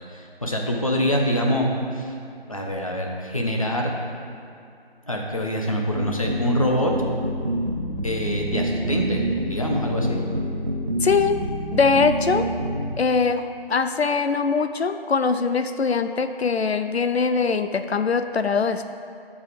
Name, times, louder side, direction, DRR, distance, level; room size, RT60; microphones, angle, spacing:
voice 1, 0.1-2.2 2.5-3.9 5.1-6.9 8.0-10.2, equal, 35° left, 0 dB, 0.9 m, -25 dB
sound 1, 6.0-12.8, right 1 dB, 45° right, 1.1 m, -27 dB
voice 2, 11.0-11.4 11.7-12.5 13.0-18.8, left 5 dB, 90° left, 9 dB, 0.5 m, -22 dB
13.0 x 4.9 x 5.0 m, 2.5 s
figure-of-eight pair, 175°, 31 cm